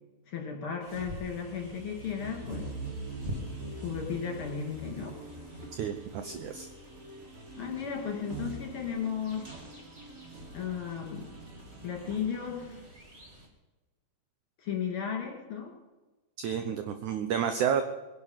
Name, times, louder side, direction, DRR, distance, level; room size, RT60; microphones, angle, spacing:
voice 1, 0.3-2.7 3.8-5.2 7.6-9.5 10.5-11.3 11.8-12.8 14.6-15.7, left 7 dB, 40° left, 1 dB, 3.1 m, -35 dB
sound 1, 0.8-13.5, right 2 dB, 25° right, 1.5 m, -44 dB
sound 2, 2.2-12.9, right 1 dB, 45° right, 3.9 m, -50 dB
voice 2, 5.8-6.7 16.4-17.8, right 8 dB, 75° right, 8 dB, 1.8 m, -30 dB
22.0 x 11.0 x 5.7 m, 1.2 s
omnidirectional pair, 4.4 m